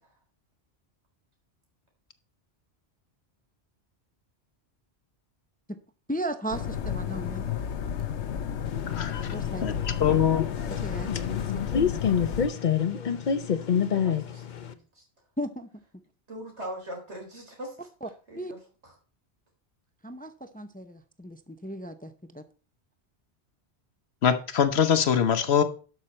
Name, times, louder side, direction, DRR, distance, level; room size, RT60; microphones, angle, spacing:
voice 1, 6.1-7.5 9.3-9.9 10.7-11.7 15.4-15.7 18.0-18.1 18.3-18.5 20.0-22.4, right 1 dB, 10° left, 10 dB, 0.6 m, -36 dB
sound 1, 6.5-12.5, left 8 dB, 90° left, 1.1 m, -32 dB
sound 2, 8.7-14.7, left 7 dB, 50° left, 0.8 m, -28 dB
voice 2, 8.9-9.3 9.6-9.7 10.0-10.5 24.2-25.6, left 8 dB, 70° left, 11 dB, 1.2 m, -23 dB
voice 3, 13.9-14.4 14.7-15.0 16.3-17.9 18.3-18.9, equal, 90° right, 1 dB, 4.3 m, -41 dB
12.0 x 6.2 x 4.3 m, 0.37 s
omnidirectional pair, 1.1 m